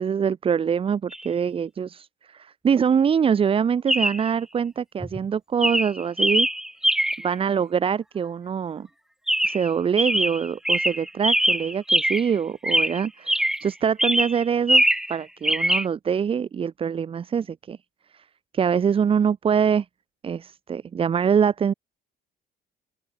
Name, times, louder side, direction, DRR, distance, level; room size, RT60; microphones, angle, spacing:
voice 1, 0.0-6.5 7.2-8.9 9.4-14.8 15.1-17.8 18.1-18.2 18.5-19.9 20.2-21.7, right 7 dB, 35° right, 0.8 m, -24 dB
Chirp tweet, 1.1-1.3 3.9-4.3 5.0-5.3 5.6-7.3 9.3-9.7 10.0-12.4 12.6-13.7 14.0-15.1 15.4-15.9, right 1 dB, 5° right, 1.0 m, -22 dB
open air
cardioid pair, 110°, 17 cm